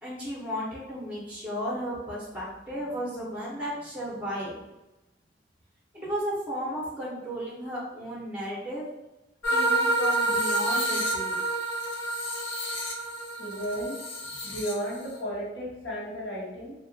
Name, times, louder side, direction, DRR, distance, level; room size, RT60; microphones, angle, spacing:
voice 1, 0.0-4.5 5.9-8.9 9.5-11.4, equal, 10° right, -6 dB, 0.6 m, -34 dB
sound 1, 9.4-15.2, right 2 dB, 85° left, 0.5 m, -28 dB
voice 2, 13.4-13.9 14.2-16.7, equal, 70° left, -5 dB, 0.9 m, -34 dB
2.7 x 2.1 x 2.6 m, 0.98 s
head